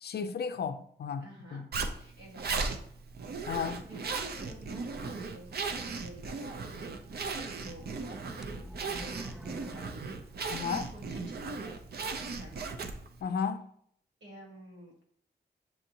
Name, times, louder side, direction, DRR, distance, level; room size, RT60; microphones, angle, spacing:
voice 1, 0.0-1.7 3.5-3.8 10.5-10.9 13.2-13.7, left 6 dB, 65° left, 0.4 m, -34 dB
voice 2, 1.2-2.8 3.5-10.0 10.6-12.8 14.2-15.0, right 1 dB, 85° right, 1.5 m, -51 dB
Zipper (clothing), 1.7-13.2, right 4 dB, 60° right, 0.5 m, -37 dB
sound 1, 7.2-11.0 11.5-11.6 12.2-12.3, equal, 5° right, 0.3 m, -49 dB
6.9 x 2.6 x 2.8 m
cardioid pair, 65°, 18 cm